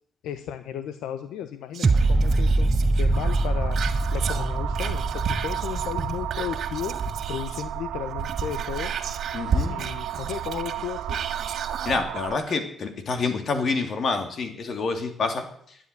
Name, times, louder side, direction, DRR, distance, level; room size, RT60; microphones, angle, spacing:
voice 1, 0.2-2.7 3.0-3.8 4.1-7.0 7.3-8.9 9.7-11.2, left 10 dB, 90° left, 10 dB, 0.9 m, -34 dB
Whispering, 1.7-7.7 8.1-12.0 12.5-12.6, right 5 dB, 60° right, 1.7 m, -32 dB
sound 1, 1.8-8.9 9.3-9.4, right 2 dB, 35° right, 0.8 m, -25 dB
sound 2, 3.1-12.4, right 12 dB, 85° right, 0.6 m, -34 dB
voice 2, 9.3-9.7 11.8-15.8, left 4 dB, 55° left, 6 dB, 2.9 m, -27 dB
11.5 x 10.0 x 9.6 m, 0.65 s
cardioid pair, 90°, 0 cm